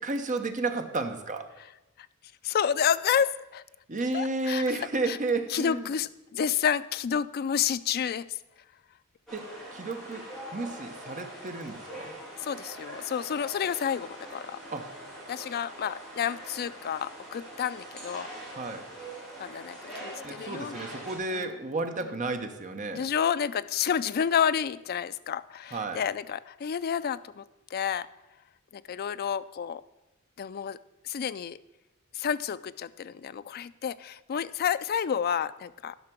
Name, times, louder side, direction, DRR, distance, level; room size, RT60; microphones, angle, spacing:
voice 1, 0.0-1.5 3.9-5.9 9.3-10.3 10.5-12.1 14.7-14.9 18.5-18.9 20.2-23.1 25.7-26.0, right 3 dB, 35° right, 6 dB, 0.9 m, -32 dB
voice 2, 2.4-3.6 4.1-4.6 5.1-5.2 5.5-8.3 12.4-14.6 15.3-18.3 19.4-20.8 21.3-21.5 22.9-27.4 27.7-28.1 28.7-29.8 30.4-30.8 31.0-31.6 32.1-36.0, left 8 dB, 45° left, 15 dB, 0.3 m, -30 dB
sound 1, 9.3-21.2, right 1 dB, 5° left, 3.5 m, -43 dB
11.0 x 5.8 x 6.0 m, 0.99 s
head